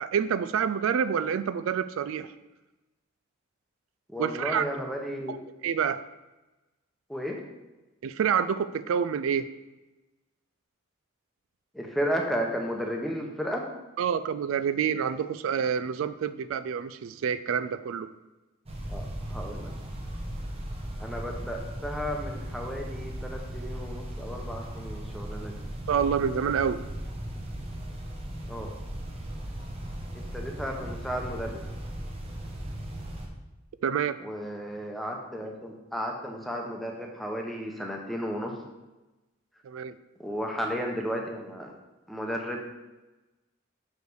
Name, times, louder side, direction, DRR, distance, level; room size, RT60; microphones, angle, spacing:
voice 1, 0.0-2.3 4.2-4.6 5.3-5.4 5.6-6.0 8.0-9.5 14.0-18.1 25.9-26.8 33.8-34.2 39.6-40.0, right 7 dB, 75° right, 13 dB, 0.3 m, -27 dB
voice 2, 4.1-5.4 7.1-7.4 11.7-13.6 18.9-19.7 21.0-25.6 28.5-28.7 30.1-31.6 34.2-38.5 40.2-41.7 42.1-42.6, equal, ahead, 1 dB, 0.9 m, -33 dB
sound 1, 18.7-33.3, right 1 dB, 30° right, 1.0 m, -37 dB
6.5 x 5.1 x 4.7 m, 1.1 s
head